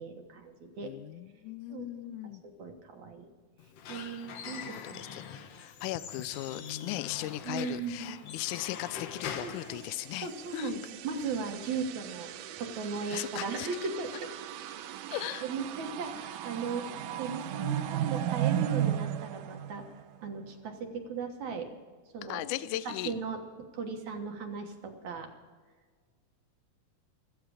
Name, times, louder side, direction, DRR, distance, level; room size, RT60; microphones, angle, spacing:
voice 1, 0.0-0.9 1.7-1.9 2.4-3.3 3.9-5.1 7.4-8.2 9.4-9.8 10.2-12.3 12.6-14.3 15.1-16.9 17.2-19.8 20.2-21.7 22.1-22.4 22.9-23.4 23.7-25.3, right 5 dB, 65° right, 4 dB, 2.6 m, -37 dB
voice 2, 0.8-2.4 4.6-10.8 13.1-13.7 15.1-15.5 22.3-23.1, left 15 dB, 80° left, 15 dB, 2.0 m, -38 dB
Squeak / Wood, 3.6-10.5, left 7 dB, 60° left, 2.0 m, -43 dB
sound 1, 9.6-20.3, right 11 dB, 90° right, 2.3 m, -36 dB
15.0 x 14.5 x 5.0 m, 1.5 s
omnidirectional pair, 3.6 m